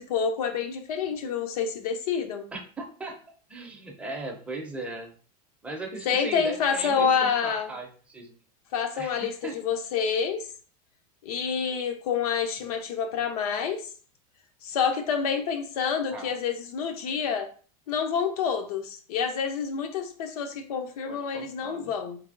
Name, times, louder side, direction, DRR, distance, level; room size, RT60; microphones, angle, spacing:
voice 1, 0.0-2.5 6.1-7.7 8.7-9.3 9.6-10.5 11.2-13.9 14.6-17.5 17.9-22.2, left 6 dB, 85° left, 6 dB, 0.6 m, -28 dB
voice 2, 2.5-3.2 3.5-5.1 5.6-8.4 9.0-9.6 16.1-16.3 21.1-21.9, right 2 dB, 5° right, 1 dB, 0.5 m, -38 dB
3.3 x 2.7 x 2.5 m, 0.41 s
supercardioid pair, 145°, 19 cm